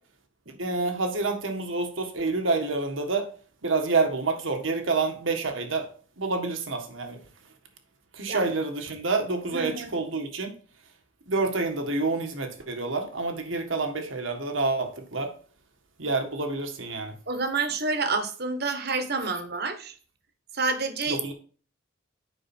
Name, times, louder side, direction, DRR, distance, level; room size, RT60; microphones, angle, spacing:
voice 1, 0.6-3.2 3.6-5.9 6.2-7.2 8.1-10.5 11.3-15.3 16.0-17.1 21.1-21.3, right 3 dB, 80° right, 1.7 m, -28 dB
voice 2, 9.5-9.9 17.3-19.9 20.5-21.2, right 4 dB, 50° right, 1.3 m, -28 dB
9.0 x 5.5 x 4.4 m
head